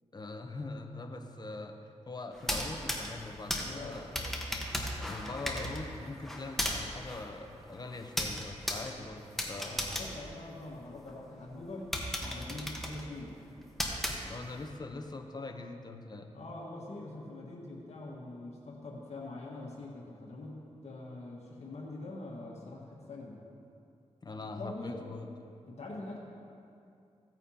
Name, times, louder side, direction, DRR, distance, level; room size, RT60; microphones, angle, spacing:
voice 1, 0.1-1.8 2.1-4.3 5.0-9.8 14.3-16.3 24.2-25.3, left 3 dB, 35° left, 5 dB, 0.9 m, -42 dB
sound 1, 2.3-11.1 11.5-11.6 11.9-14.7, equal, ahead, 1.3 m, -37 dB
voice 2, 3.7-4.1 9.6-11.9 12.2-13.4 16.3-23.4 24.6-25.0 25.7-26.2, left 2 dB, 65° left, -3 dB, 1.7 m, -44 dB
16.0 x 8.9 x 2.9 m, 2.6 s
cardioid pair, 70°, 12 cm